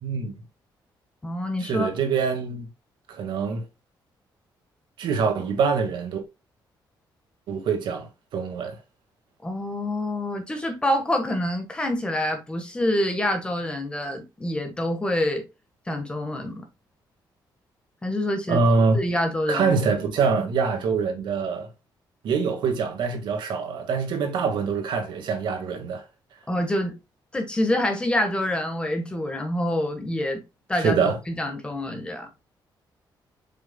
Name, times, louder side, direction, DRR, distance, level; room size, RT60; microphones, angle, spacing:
voice 1, 0.0-0.4 1.6-2.7 3.1-3.6 5.0-6.2 7.5-8.8 18.5-19.0 19.5-21.7 22.2-26.0 30.8-31.2, right 5 dB, 70° right, 1.8 m, -24 dB
voice 2, 1.2-1.9 9.4-15.4 15.9-16.6 18.0-18.6 18.9-19.8 26.5-26.9 27.3-30.4 30.7-32.3, left 1 dB, 10° left, 1.4 m, -26 dB
7.7 x 5.7 x 2.3 m
cardioid pair, 175°, 8 cm